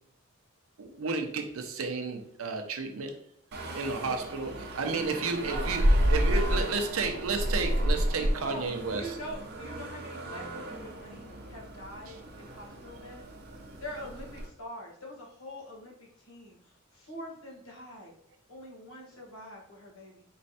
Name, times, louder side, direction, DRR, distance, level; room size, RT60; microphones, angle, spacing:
voice 1, 0.8-3.1 3.7-5.8 6.1-9.1, right 4 dB, 85° right, 5 dB, 0.6 m, -32 dB
sound 1, 3.5-14.5, equal, 50° right, 0.7 m, -31 dB
voice 2, 6.3-6.7 8.2-13.2 13.8-18.1 18.5-20.2, equal, 75° left, -3 dB, 1.3 m, -44 dB
4.4 x 3.2 x 2.7 m, 0.71 s
head